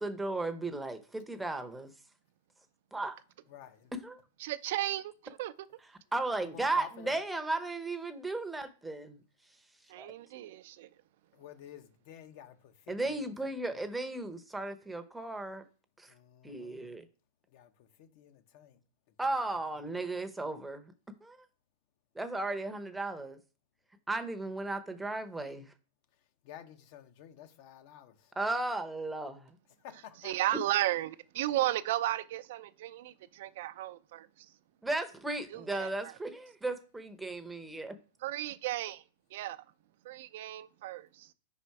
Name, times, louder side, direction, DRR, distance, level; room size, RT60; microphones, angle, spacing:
voice 1, 0.0-1.9 2.9-3.2 3.9-4.2 6.1-9.2 10.0-10.1 12.9-15.6 16.0-16.1 16.4-17.0 19.2-20.8 21.2-21.4 22.2-23.4 24.1-25.7 28.4-29.5 34.8-37.9, right 2 dB, 5° right, 0.7 m, -35 dB
voice 2, 3.5-3.9 6.4-7.2 11.3-13.2 16.1-16.9 17.5-18.8 19.9-20.2 26.4-28.3 29.8-30.3, left 10 dB, 55° left, 1.0 m, -51 dB
voice 3, 4.4-5.7 9.9-10.9 30.2-34.5 35.5-36.1 38.2-39.0 39.3-39.6 40.0-41.3, right 14 dB, 60° right, 0.5 m, -34 dB
5.2 x 4.2 x 4.7 m
hypercardioid pair, 135°, 0 cm